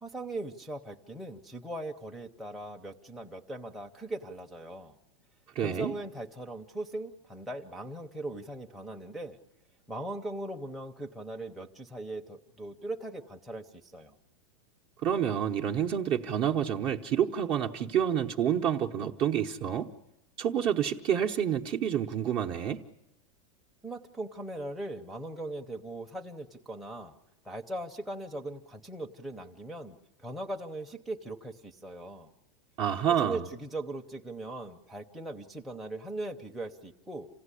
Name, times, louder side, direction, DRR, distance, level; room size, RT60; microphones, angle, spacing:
voice 1, 0.0-5.0 5.6-9.4 9.9-14.1 23.8-27.1 27.4-32.3 33.2-37.3, right 1 dB, ahead, 0.8 m, -39 dB
voice 2, 5.5-5.9 15.0-19.9 20.4-22.8 32.8-33.4, right 9 dB, 30° right, 0.9 m, -28 dB
28.0 x 16.5 x 9.9 m
supercardioid pair, 160°, 18 cm